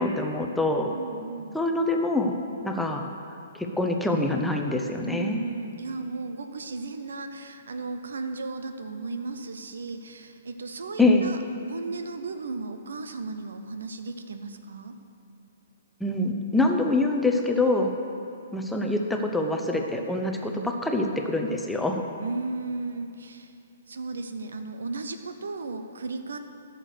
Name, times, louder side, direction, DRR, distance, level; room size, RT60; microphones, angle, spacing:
voice 1, 0.0-0.9 1.5-2.3 2.6-3.0 3.5-5.4 11.0-11.3 16.0-17.9 18.5-22.0, left 2 dB, 5° left, 2 dB, 0.8 m, -25 dB
voice 2, 0.9-1.6 5.0-11.4 11.7-15.0 22.2-23.5 23.9-26.4, right 3 dB, 65° right, 8 dB, 0.8 m, -35 dB
14.0 x 6.7 x 6.6 m, 2.5 s
figure-of-eight pair, 120°, 0 cm